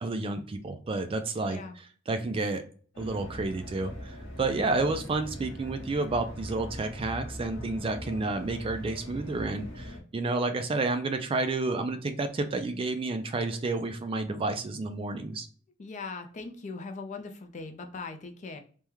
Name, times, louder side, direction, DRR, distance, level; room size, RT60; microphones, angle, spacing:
voice 1, 0.0-1.6 2.1-2.6 3.0-15.5, right 3 dB, 30° right, 8 dB, 0.3 m, -30 dB
sound 1, 2.9-10.0, equal, 75° left, 0.9 m, -41 dB
voice 2, 15.8-18.6, left 4 dB, 40° left, 5 dB, 0.5 m, -40 dB
3.5 x 2.1 x 2.9 m, 0.44 s
head